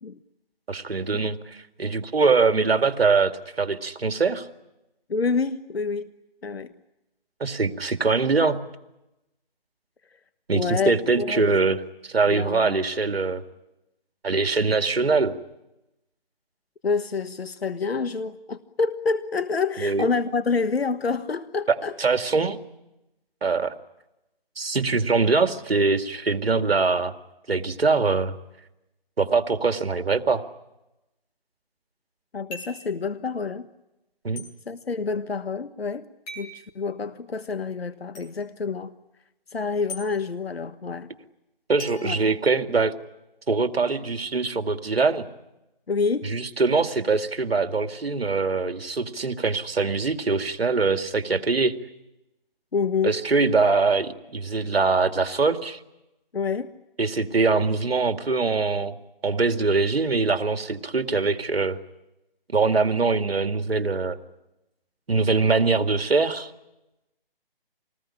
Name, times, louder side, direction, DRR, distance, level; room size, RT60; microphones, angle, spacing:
voice 1, 0.7-4.5 7.4-8.6 10.5-13.4 14.2-15.3 19.8-20.1 22.0-22.6 23.4-23.7 24.6-27.1 27.5-28.4 29.2-30.4 34.2-34.4 41.7-42.9 43.5-45.3 46.2-51.8 53.0-55.8 57.0-59.0 59.2-61.8 62.5-64.2 65.1-66.5, right 4 dB, 80° right, 2.3 m, -23 dB
voice 2, 5.1-6.1 6.4-6.7 10.5-11.4 12.3-12.8 16.8-21.9 32.3-33.7 34.7-36.1 36.4-38.9 39.5-41.1 42.0-42.2 45.9-46.3 52.7-53.2 56.3-56.7, left 4 dB, 85° left, 1.3 m, -27 dB
sound 1, 32.5-32.9 34.4-34.5 36.3-36.6 38.1-38.3 39.9-40.0 41.8-42.9, left 1 dB, 20° left, 6.6 m, -40 dB
26.5 x 20.0 x 10.0 m
hypercardioid pair, 165°, 30 cm